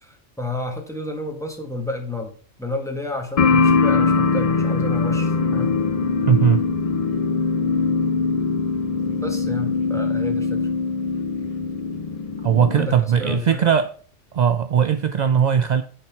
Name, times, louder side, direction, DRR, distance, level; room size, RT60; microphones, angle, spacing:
voice 1, 0.0-2.3 2.6-5.7 9.2-10.6 12.7-13.7, left 2 dB, 5° left, 1.6 m, -31 dB
sound 1, 3.4-12.9, left 4 dB, 50° left, 0.4 m, -21 dB
voice 2, 6.3-6.6 12.4-13.9 14.3-15.8, right 8 dB, 60° right, 0.4 m, -19 dB
9.8 x 4.3 x 5.8 m
omnidirectional pair, 1.3 m